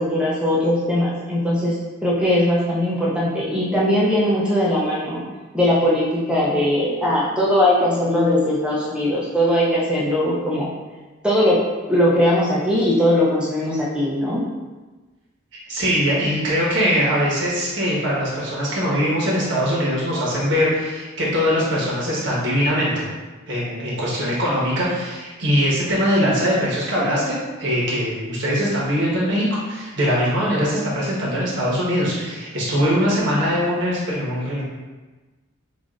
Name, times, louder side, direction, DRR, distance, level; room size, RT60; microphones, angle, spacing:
voice 1, 0.0-1.7 2.0-5.2 5.5-10.7 11.2-11.6 11.9-14.4, left 1 dB, 5° right, -6 dB, 0.5 m, -20 dB
voice 2, 15.7-23.0 23.5-34.6, equal, 60° right, -6 dB, 1.2 m, -21 dB
5.0 x 2.5 x 2.5 m, 1.2 s
head